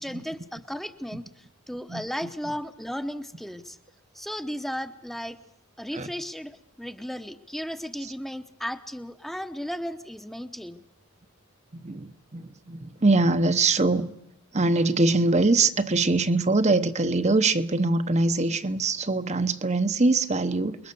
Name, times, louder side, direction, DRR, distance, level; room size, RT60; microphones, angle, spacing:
voice 1, 0.0-3.8 4.1-5.4 5.8-10.8, equal, ahead, 0.9 m, -35 dB
voice 2, 11.7-14.1 14.5-20.9, right 3 dB, 30° right, 0.8 m, -23 dB
28.0 x 22.0 x 7.0 m
head